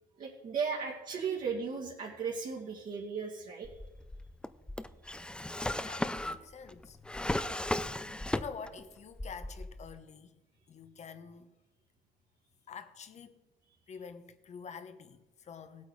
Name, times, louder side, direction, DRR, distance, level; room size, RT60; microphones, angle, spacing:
voice 1, 0.2-3.8, right 5 dB, 55° right, 2.2 m, -36 dB
Drawer open or close, 3.6-8.8 9.1-10.0, left 1 dB, 5° left, 0.5 m, -36 dB
voice 2, 5.6-7.2 7.6-10.4 10.7-11.5 12.7-13.4 13.9-15.9, left 6 dB, 40° left, 1.1 m, -48 dB
17.0 x 8.5 x 4.8 m
cardioid pair, 110°, 17 cm